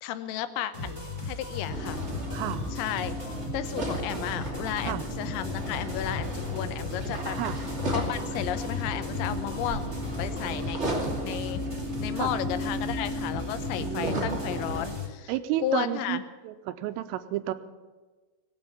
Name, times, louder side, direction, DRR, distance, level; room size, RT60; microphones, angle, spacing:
voice 1, 0.0-2.0 2.7-3.2 3.5-7.4 7.9-9.9 10.2-10.8 11.2-11.6 12.0-15.3 15.6-16.2, left 12 dB, 85° left, 11 dB, 3.5 m, -33 dB
sound 1, 0.7-15.1, left 2 dB, 5° left, 2.8 m, -37 dB
sound 2, 1.7-14.8, equal, 30° right, 1.2 m, -34 dB
voice 2, 2.3-2.6 4.8-5.0 7.4-7.6 12.1-12.4 13.8-14.4 15.3-16.2 16.4-17.5, right 14 dB, 85° right, 11 dB, 3.3 m, -31 dB
18.5 x 8.8 x 8.6 m, 1.3 s
omnidirectional pair, 5.8 m